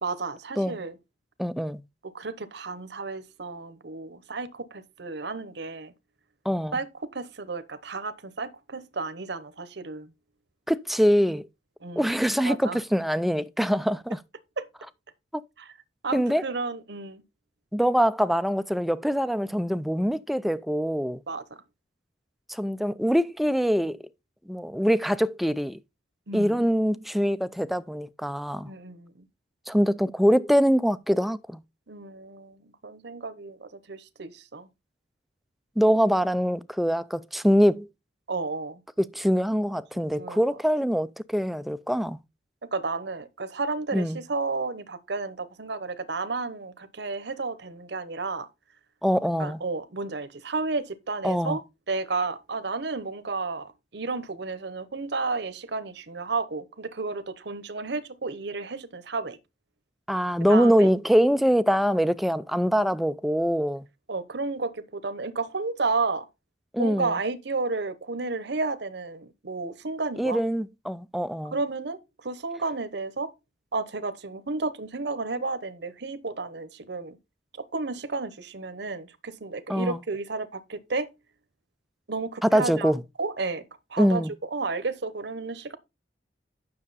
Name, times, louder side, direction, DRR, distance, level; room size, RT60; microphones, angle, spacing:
voice 1, 0.0-0.9 2.0-5.9 6.7-10.1 11.8-12.1 12.4-12.8 14.6-14.7 15.6-15.7 16.0-17.2 21.3-21.4 26.3-26.6 28.6-29.3 31.9-34.7 38.3-38.8 39.9-40.4 42.7-48.5 49.4-51.6 51.9-59.4 60.5-60.9 64.1-66.3 66.8-70.4 71.5-73.3 73.7-77.2 77.6-81.1 82.1-82.9 83.2-83.6 83.9-84.2 84.5-85.8, right 3 dB, 65° right, 1.0 m, -32 dB
voice 2, 1.4-1.8 6.5-6.7 10.7-11.4 12.0-14.2 15.3-15.4 16.1-16.4 17.7-21.2 22.5-24.0 24.5-25.8 26.3-28.7 29.7-31.6 35.8-37.9 39.0-42.2 43.9-44.2 49.0-49.6 51.2-51.6 60.1-63.8 66.7-67.1 70.2-71.5 79.7-80.0 82.4-83.0 84.0-84.3, equal, ahead, 0.4 m, -24 dB
9.8 x 6.4 x 4.1 m
head